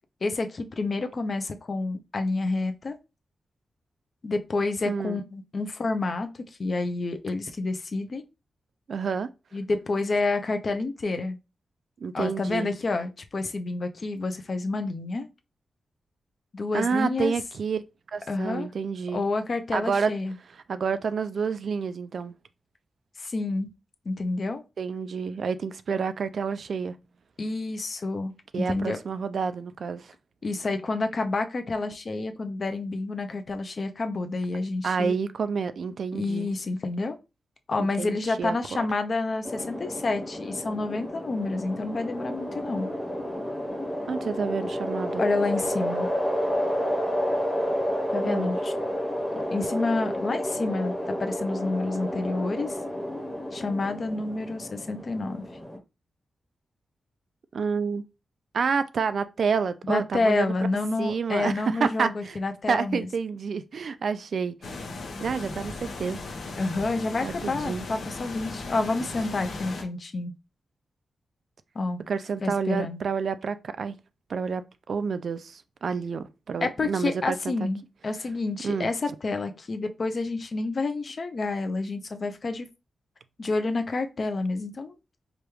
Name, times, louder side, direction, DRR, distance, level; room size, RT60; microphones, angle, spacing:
voice 1, 0.2-3.0 4.2-6.3 6.6-8.2 9.5-11.4 12.1-15.3 16.5-17.3 18.3-18.7 19.1-20.3 23.2-23.7 24.1-24.6 27.4-29.0 30.4-35.2 36.1-37.2 37.7-42.9 45.2-46.1 48.1-48.7 49.4-52.8 53.5-55.4 59.8-63.1 66.6-70.3 71.8-72.0 72.4-73.0 76.6-82.7 83.4-85.0, left 3 dB, 40° left, 0.5 m, -29 dB
voice 2, 4.9-5.2 8.9-9.3 12.0-12.7 16.7-17.8 18.1-19.2 19.7-20.1 20.7-22.3 24.8-27.0 28.5-30.1 34.8-36.5 37.8-38.9 44.1-45.2 48.3-48.5 57.5-58.1 58.5-60.5 61.0-62.4 62.7-64.6 65.2-66.2 67.2-67.8 72.1-73.9 74.3-77.7 78.6-78.9, right 5 dB, 60° right, 0.3 m, -29 dB
sound 1, 39.4-55.8, equal, 5° right, 0.8 m, -30 dB
sound 2, 64.6-69.8, left 3 dB, 85° left, 0.8 m, -37 dB
4.9 x 2.3 x 3.0 m
wide cardioid pair, 140°, 0 cm